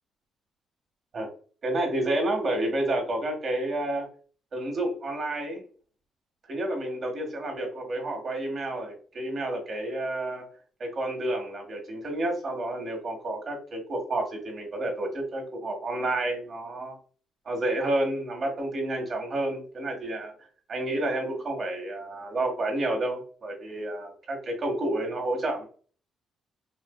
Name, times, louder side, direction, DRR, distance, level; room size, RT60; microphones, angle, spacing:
voice 1, 1.6-4.1 4.5-5.6 6.5-10.4 10.8-17.0 17.4-20.3 20.7-25.6, right 1 dB, 50° right, 2 dB, 1.6 m, -30 dB
4.4 x 2.6 x 2.3 m, 0.41 s
cardioid pair, 90°, 0 cm